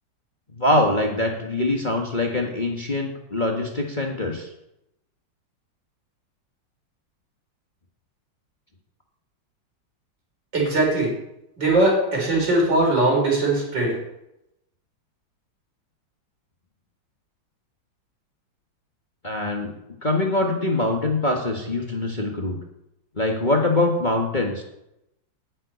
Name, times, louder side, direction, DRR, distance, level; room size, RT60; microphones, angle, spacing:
voice 1, 0.5-4.5 19.2-19.7 20.0-22.6 23.1-24.6, left 2 dB, 25° left, 0 dB, 1.6 m, -23 dB
voice 2, 10.5-11.1 11.6-14.0, right 2 dB, 70° right, -2 dB, 5.5 m, -20 dB
10.5 x 7.7 x 9.5 m, 0.85 s
omnidirectional pair, 2.0 m